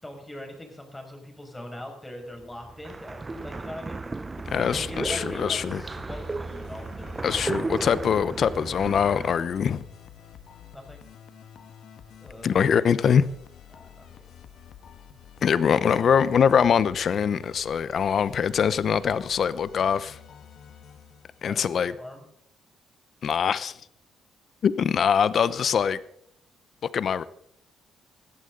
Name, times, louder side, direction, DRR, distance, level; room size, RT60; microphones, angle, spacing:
voice 1, 0.0-4.0 4.6-8.0 10.7-11.0 12.2-12.7 13.7-14.2 21.5-22.2, left 1 dB, 10° left, 5.7 m, -42 dB
sound 1, 2.4-9.3, right 3 dB, 25° right, 0.7 m, -34 dB
sound 2, 4.5-21.9, left 8 dB, 70° left, 1.5 m, -48 dB
voice 2, 4.5-5.8 7.2-9.8 12.4-13.3 15.4-20.2 21.4-21.9 23.2-23.7 24.6-26.0 26.9-27.2, left 7 dB, 55° left, 0.8 m, -23 dB
20.0 x 14.5 x 3.9 m
cardioid pair, 90°, 0 cm